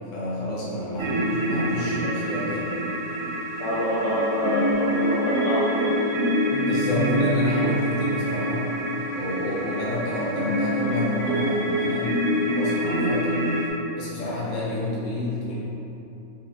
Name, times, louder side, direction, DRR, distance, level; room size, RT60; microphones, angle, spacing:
voice 1, 0.1-2.7 6.4-8.7 9.1-12.2 12.5-13.4 13.9-15.6, left 2 dB, 40° left, -7 dB, 0.7 m, -29 dB
sound 1, 1.0-13.7, equal, 60° right, 0.7 m, -25 dB
voice 2, 3.6-6.3, equal, 70° left, -7 dB, 0.9 m, -26 dB
4.1 x 2.6 x 2.7 m, 2.9 s
omnidirectional pair, 1.5 m